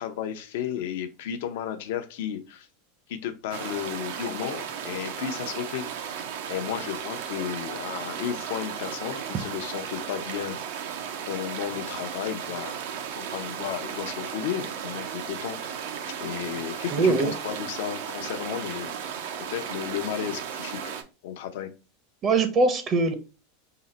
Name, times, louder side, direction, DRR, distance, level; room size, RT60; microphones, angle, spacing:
voice 1, 0.0-2.7 3.1-6.2 6.5-10.6 11.3-12.8 13.2-15.8 16.2-18.9 19.5-20.9 21.2-21.7, left 10 dB, 70° left, 0.6 m, -33 dB
sound 1, 3.5-21.0, right 8 dB, 70° right, 0.6 m, -35 dB
voice 2, 16.9-17.3 22.2-23.1, right 3 dB, 35° right, 0.7 m, -22 dB
3.8 x 2.1 x 4.0 m
hypercardioid pair, 110°, 0 cm